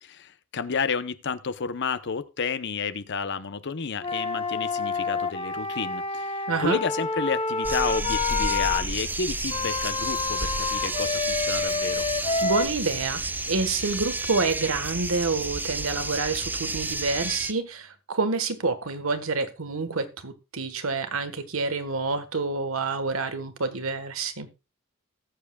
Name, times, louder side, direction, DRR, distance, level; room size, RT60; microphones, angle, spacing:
voice 1, 0.0-12.1, left 5 dB, 60° left, 13 dB, 0.8 m, -31 dB
Wind instrument woodwind instrument, 4.0-8.8 9.5-12.7, left 4 dB, 25° left, 0.9 m, -28 dB
voice 2, 6.5-6.8 12.4-24.5, right 4 dB, 80° right, 9 dB, 1.4 m, -28 dB
sound 1, 7.6-17.5, right 3 dB, 10° right, 0.4 m, -31 dB
19.0 x 7.3 x 2.3 m, 0.28 s
head